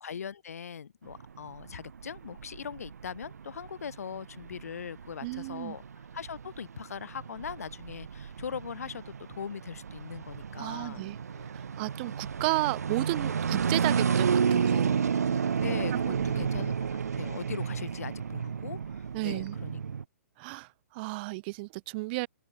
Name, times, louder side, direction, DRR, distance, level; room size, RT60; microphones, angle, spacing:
voice 1, 0.0-5.8 6.1-11.5 15.6-19.8, left 7 dB, 70° left, 2.2 m, -40 dB
sound 1, 1.1-20.0, right 6 dB, 80° right, 0.5 m, -31 dB
voice 2, 5.2-5.8 10.6-11.2 11.5-15.0 16.1-16.4 19.1-19.6 20.4-22.3, right 25 dB, 40° right, 0.7 m, -33 dB
open air
figure-of-eight pair, 115°, 8 cm